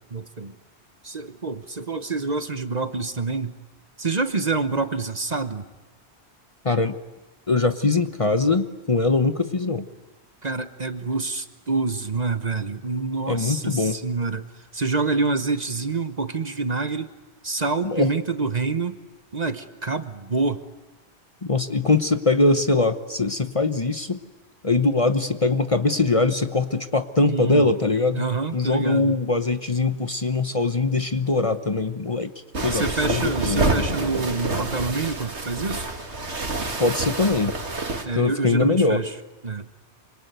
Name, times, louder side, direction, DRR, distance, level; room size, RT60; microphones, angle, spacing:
voice 1, 0.1-0.5 1.0-3.6 4.0-5.7 10.4-14.5 14.7-17.1 17.4-19.0 19.3-20.6 27.3-27.7 28.1-29.2 32.7-35.9 38.0-39.1 39.4-39.7, right 4 dB, 40° right, 11 dB, 1.2 m, -27 dB
voice 2, 7.5-9.8 13.3-14.0 17.8-18.1 21.4-24.2 24.6-28.2 28.5-32.3 32.6-33.8 36.8-37.5 38.1-39.0, left 3 dB, 30° left, 10 dB, 1.0 m, -22 dB
sound 1, 32.5-38.0, right 2 dB, 90° right, 2.7 m, -27 dB
25.5 x 25.0 x 9.3 m, 1.1 s
omnidirectional pair, 1.1 m